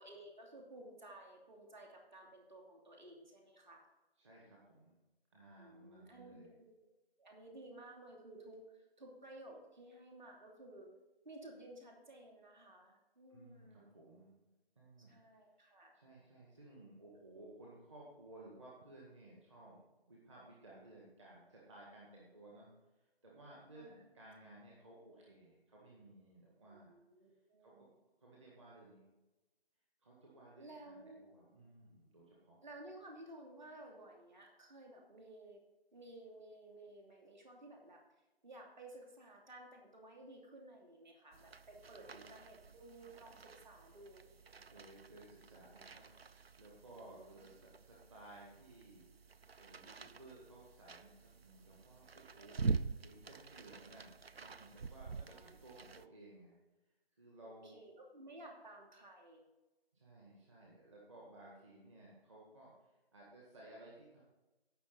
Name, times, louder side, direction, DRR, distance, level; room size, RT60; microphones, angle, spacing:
voice 1, 0.0-3.8 5.6-6.7 7.2-10.9 11.2-13.9 15.0-15.9 23.7-24.0 26.6-27.8 30.6-31.2 32.6-35.6 35.9-38.0 38.4-44.3 46.9-47.4 55.2-55.6 57.4-59.4, right 1 dB, 50° right, 0 dB, 2.9 m, -55 dB
voice 2, 4.2-5.0 5.3-6.5 13.3-14.4 14.8-15.1 15.9-19.8 20.1-22.7 23.0-26.9 27.6-27.9 28.2-29.1 30.0-32.6 42.1-42.3 44.6-49.1 49.6-56.6 57.2-57.7 59.9-64.2, right 1 dB, 30° right, -4 dB, 1.9 m, -58 dB
sound 1, 41.3-56.1, right 4 dB, 75° right, 0.6 m, -46 dB
16.5 x 6.0 x 4.1 m, 1.1 s
figure-of-eight pair, 155°, 31 cm